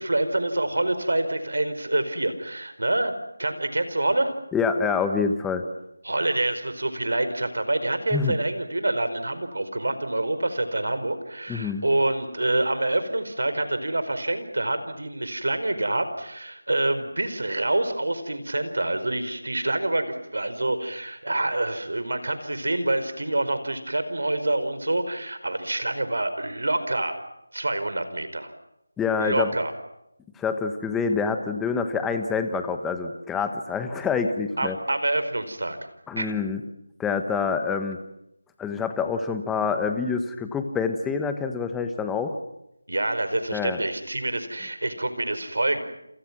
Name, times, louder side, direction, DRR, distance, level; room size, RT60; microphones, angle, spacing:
voice 1, 0.0-3.1 3.4-4.3 6.0-27.2 27.5-28.5 29.2-29.7 34.6-35.8 36.2-36.3 42.9-45.8, right 2 dB, 75° right, 10 dB, 4.7 m, -26 dB
voice 2, 4.5-5.6 8.1-8.4 11.5-11.8 29.0-29.5 30.4-34.8 36.1-36.6 37.0-38.0 38.6-42.4 43.5-43.8, left 5 dB, 5° left, 7 dB, 1.2 m, -26 dB
29.5 x 27.5 x 6.1 m, 0.83 s
figure-of-eight pair, 170°, 0 cm